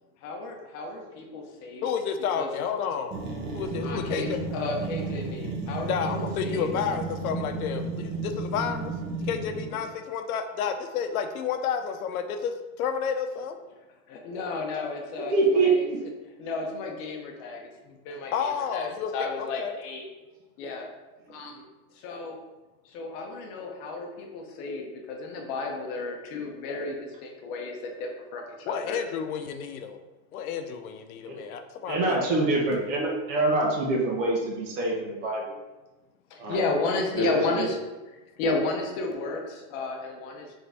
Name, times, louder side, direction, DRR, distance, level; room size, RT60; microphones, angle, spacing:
voice 1, 0.2-1.9 2.4-2.5 3.8-6.7 9.8-9.9 14.1-15.9 16.4-20.1 20.6-20.9 21.3-21.7 22.0-22.4 22.8-29.0 36.3-37.8 38.4-40.6, left 3 dB, 40° left, 2 dB, 0.7 m, -33 dB
voice 2, 1.8-3.2 3.5-4.4 5.9-8.9 9.3-13.6 18.3-19.1 19.4-19.8 28.7-30.0 30.3-32.4, left 7 dB, 80° left, 7 dB, 0.7 m, -31 dB
sound 1, 3.1-9.9, right 3 dB, 25° right, 0.6 m, -33 dB
voice 3, 15.3-16.0 21.2-21.5 31.2-31.4 31.9-35.5 36.4-36.6 37.2-37.6, right 2 dB, 60° right, -2 dB, 1.5 m, -25 dB
3.9 x 3.5 x 3.4 m, 1.1 s
supercardioid pair, 150°, 42 cm